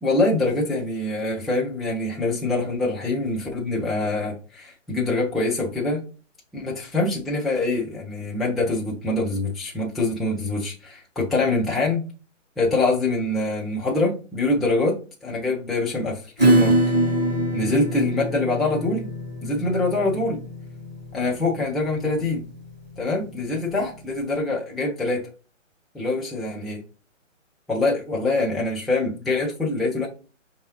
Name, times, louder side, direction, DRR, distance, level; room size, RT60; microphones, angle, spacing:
voice 1, 0.0-6.0 6.5-12.0 12.6-16.8 17.5-19.1 19.4-20.4 21.1-22.4 23.0-25.3 25.9-26.8 27.7-30.1, left 2 dB, ahead, 0.4 m, -24 dB
Acoustic guitar / Strum, 16.4-23.6, right 1 dB, 35° right, 1.3 m, -24 dB
5.1 x 2.7 x 2.9 m
hypercardioid pair, 180°, 38 cm